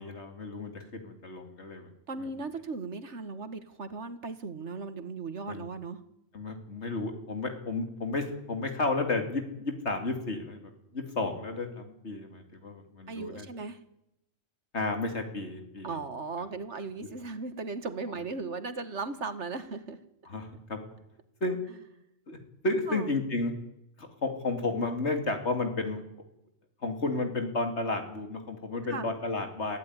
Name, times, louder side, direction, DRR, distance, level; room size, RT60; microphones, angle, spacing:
voice 1, 0.0-1.9 2.2-2.3 5.5-5.6 6.3-13.5 14.7-16.0 17.0-17.1 20.3-20.8 21.4-21.6 22.3-22.4 22.6-23.5 24.0-26.0 26.8-29.8, left 2 dB, 70° left, 6 dB, 3.2 m, -32 dB
voice 2, 2.1-6.0 13.1-13.8 15.8-20.0 22.9-23.0 28.9-29.1, right 4 dB, 75° right, 11 dB, 2.0 m, -37 dB
23.5 x 15.0 x 9.8 m, 0.84 s
omnidirectional pair, 1.2 m